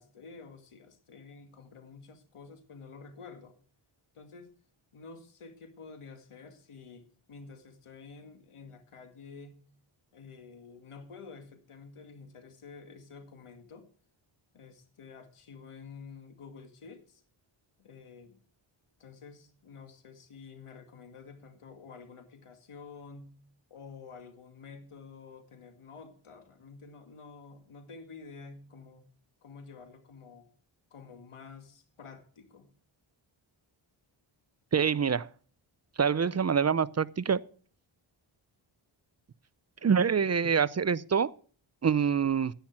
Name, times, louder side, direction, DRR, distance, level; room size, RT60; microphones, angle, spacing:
voice 1, 0.0-3.6 4.1-4.5 4.9-9.6 10.1-13.9 14.5-17.2 17.8-18.4 19.0-23.4 23.7-29.1 29.4-30.5 30.9-32.7, left 5 dB, 85° left, 2.1 m, -50 dB
voice 2, 34.7-35.3 36.0-37.4 39.8-41.3 41.8-42.5, right 6 dB, 35° right, 0.5 m, -26 dB
10.5 x 10.5 x 6.0 m
wide cardioid pair, 75°, 49 cm